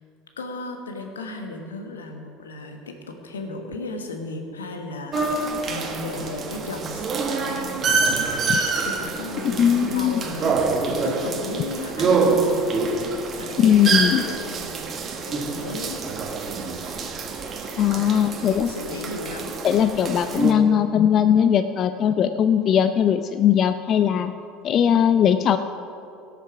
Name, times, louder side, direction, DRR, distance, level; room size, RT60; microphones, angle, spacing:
voice 1, 0.4-10.6 10.9-12.7 13.1-16.0 16.6-16.9 18.1-19.6, left 3 dB, 85° left, 4 dB, 1.3 m, -35 dB
sound 1, 5.1-20.5, right 4 dB, 40° right, 1.6 m, -26 dB
voice 2, 9.6-10.2 13.6-14.2 17.8-18.7 19.6-24.3 24.6-25.6, left 9 dB, 45° left, 10 dB, 0.4 m, -19 dB
17.5 x 6.7 x 5.9 m, 2.7 s
hypercardioid pair, 70°, 0 cm